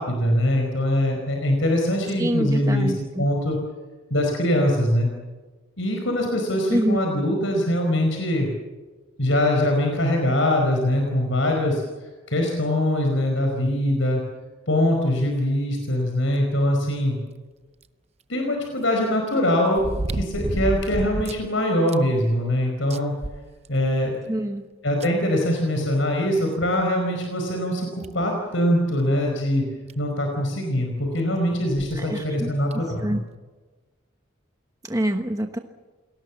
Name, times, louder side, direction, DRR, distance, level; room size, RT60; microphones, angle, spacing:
voice 1, 0.0-3.6 4.1-5.1 5.8-8.5 9.2-14.2 14.7-17.2 18.3-23.1 23.7-24.2 24.8-29.6 29.9-33.2, left 1 dB, 80° left, 2 dB, 5.0 m, -23 dB
voice 2, 2.2-3.2 6.7-7.0 24.3-24.6 32.0-32.5 33.0-33.2 34.8-35.6, right 1 dB, 15° right, 5 dB, 1.2 m, -25 dB
sound 1, 17.8-17.9 19.8-21.5 21.9-22.0 22.4-22.5 22.9-24.0 25.0-25.1 26.6-26.7 27.2-27.3 28.0-28.3 29.6-29.7 29.9-30.0 31.7-32.0 32.7-32.8, right 1 dB, 35° right, 0.7 m, -29 dB
29.0 x 20.0 x 7.4 m, 1.3 s
head